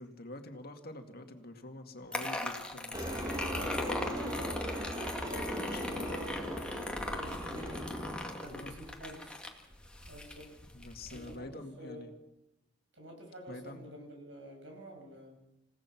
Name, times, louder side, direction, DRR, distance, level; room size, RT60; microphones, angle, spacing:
voice 1, 0.0-4.4 5.6-6.2 8.4-8.7 10.7-12.1 13.5-13.8, left 1 dB, 55° left, 5 dB, 2.2 m, -47 dB
sound 1, 2.1-11.4, left 1 dB, 5° left, 2.2 m, -39 dB
sound 2, 2.9-8.1, equal, 20° right, 2.3 m, -40 dB
voice 2, 3.4-4.5 5.3-8.0 8.4-9.4 10.1-10.5 11.1-12.1 12.9-15.4, right 1 dB, 75° right, 1 dB, 7.5 m, -48 dB
28.0 x 17.0 x 6.0 m, 0.95 s
head